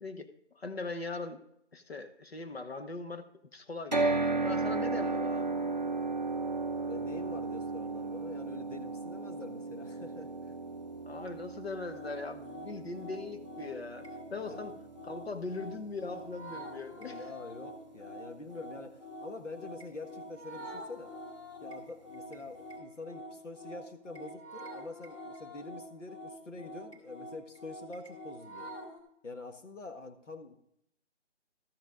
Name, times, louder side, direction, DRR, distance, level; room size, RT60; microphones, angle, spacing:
voice 1, 0.5-1.4 1.7-3.3 3.5-5.6 11.0-14.7 15.0-17.2, left 3 dB, 55° left, 8 dB, 1.2 m, -40 dB
sound 1, 3.9-18.0, right 3 dB, 40° right, 0.5 m, -36 dB
voice 2, 6.8-10.6 14.5-14.7 17.0-21.1 21.6-28.7 29.2-30.6, left 2 dB, 85° left, 6 dB, 1.8 m, -46 dB
sound 2, 11.9-29.0, equal, 25° left, 1.9 m, -46 dB
13.0 x 8.0 x 3.8 m, 0.75 s
figure-of-eight pair, 175°, 36 cm